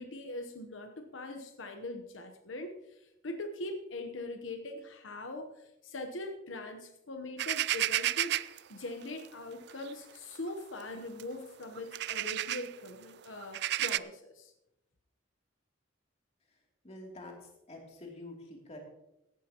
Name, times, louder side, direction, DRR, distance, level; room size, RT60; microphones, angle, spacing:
voice 1, 0.0-14.5, left 2 dB, 85° left, 6 dB, 1.0 m, -42 dB
sound 1, 7.4-8.6 9.7-9.9 10.4-10.5 11.2-11.3 11.8-12.7 13.4-14.0, right 13 dB, 60° right, 0.3 m, -31 dB
voice 2, 16.8-17.3 17.7-18.8, left 2 dB, 35° left, 0 dB, 2.9 m, -46 dB
16.5 x 12.0 x 3.0 m, 0.88 s
head